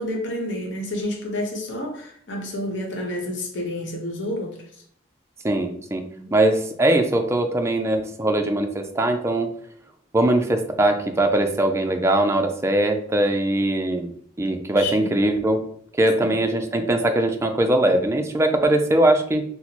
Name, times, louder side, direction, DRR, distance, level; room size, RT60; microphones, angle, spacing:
voice 1, 0.0-4.5 6.1-6.3 14.7-15.1 16.2-16.4, left 1 dB, 65° left, 0.9 m, -29 dB
voice 2, 5.4-6.0 6.3-9.5 10.1-15.6 16.0-19.4, right 1 dB, 15° right, 0.3 m, -21 dB
4.1 x 2.0 x 2.9 m
head